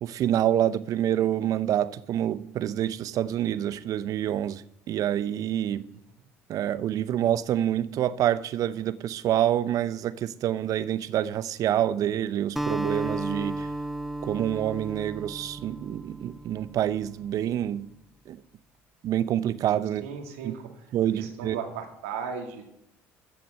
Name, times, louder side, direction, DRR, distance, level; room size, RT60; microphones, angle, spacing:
voice 1, 0.0-5.8 6.5-13.7 14.2-17.9 18.3-18.4 19.0-20.0 20.4-20.5 20.9-21.5, right 11 dB, 55° right, 0.7 m, -27 dB
Acoustic guitar, 12.6-17.0, right 1 dB, ahead, 0.6 m, -34 dB
voice 2, 20.0-20.7 21.1-22.7, right 6 dB, 80° right, 2.3 m, -36 dB
14.5 x 5.8 x 6.5 m
hypercardioid pair, 65°, 7 cm